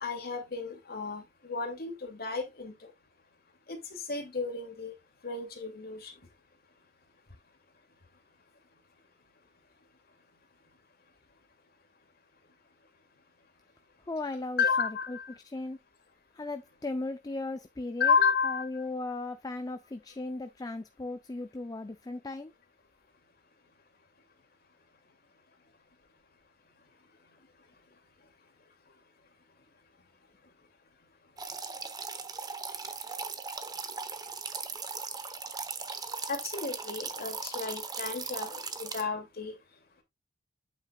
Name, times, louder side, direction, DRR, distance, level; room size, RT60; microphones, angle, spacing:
voice 1, 0.0-2.9 3.7-4.9 5.2-6.1 14.6-15.3 18.0-18.6 36.3-39.6, left 5 dB, 55° left, 2.4 m, -32 dB
voice 2, 14.1-15.2 15.4-15.8 16.3-18.1 18.4-22.5, left 2 dB, 20° left, 0.5 m, -37 dB
sound 1, 31.4-39.0, right 5 dB, 20° right, 0.9 m, -38 dB
8.7 x 6.7 x 2.3 m
head